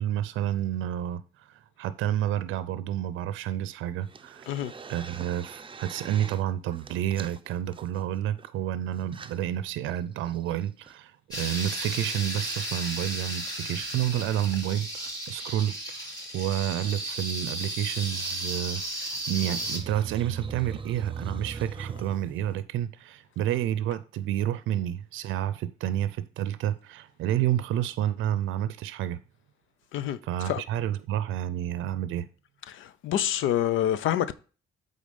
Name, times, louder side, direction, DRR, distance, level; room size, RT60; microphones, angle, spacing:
voice 1, 0.0-1.5 1.8-4.4 4.9-29.2 30.2-32.3, right 11 dB, 90° right, 0.5 m, -30 dB
sound 1, 4.0-6.4 6.7-8.5 9.0-9.4 9.9-10.0 10.2-10.9 13.0-13.3 15.1-15.2 15.4-15.5 15.7-15.8 16.1-17.0 18.1-18.3 19.2-22.6, right 6 dB, 25° right, 0.7 m, -41 dB
sound 2, 11.3-19.8, right 1 dB, 20° left, 5.0 m, -34 dB
voice 2, 33.0-34.3, left 11 dB, 80° left, 0.7 m, -26 dB
8.5 x 3.9 x 5.4 m
cardioid pair, 90°, 20 cm